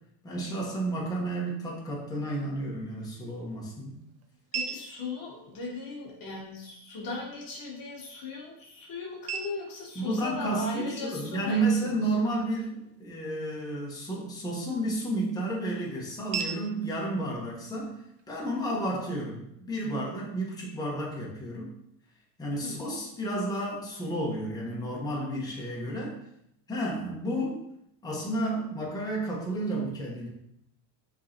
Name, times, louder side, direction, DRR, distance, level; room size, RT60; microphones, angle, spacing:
voice 1, 0.2-3.9 9.9-21.7 22.4-26.2 26.7-27.6 28.0-30.3, right 1 dB, 10° left, -4 dB, 1.2 m, -31 dB
sound 1, 2.8-18.8, right 6 dB, 30° right, 0.5 m, -44 dB
voice 2, 4.5-12.0 22.6-22.8, left 3 dB, 45° left, -1 dB, 1.1 m, -38 dB
5.2 x 3.3 x 2.9 m, 0.77 s
supercardioid pair, 105°, 50 cm